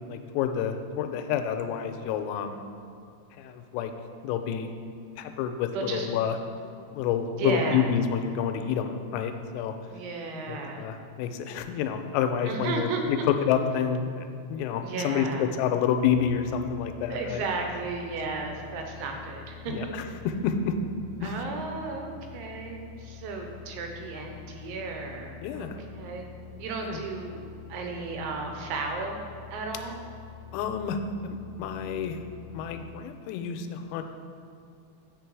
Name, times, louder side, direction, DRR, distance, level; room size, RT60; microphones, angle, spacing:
voice 1, 0.1-2.6 3.4-3.9 4.2-4.7 5.2-6.4 6.9-9.8 10.5-17.4 19.7-20.0 20.4-20.7 21.2-21.4 25.4-25.8 26.8-27.0 30.5-32.2 32.5-34.0, left 8 dB, 90° left, 7 dB, 3.3 m, -28 dB
voice 2, 5.7-6.1 7.4-7.9 9.9-10.8 12.5-13.0 14.8-15.5 17.1-19.9 21.2-26.3 26.6-29.2 29.5-30.0, right 4 dB, 85° right, 3 dB, 3.6 m, -34 dB
sound 1, 16.0-32.9, left 8 dB, 70° left, 1.8 m, -46 dB
7.6 x 6.7 x 4.6 m, 2.5 s
omnidirectional pair, 5.9 m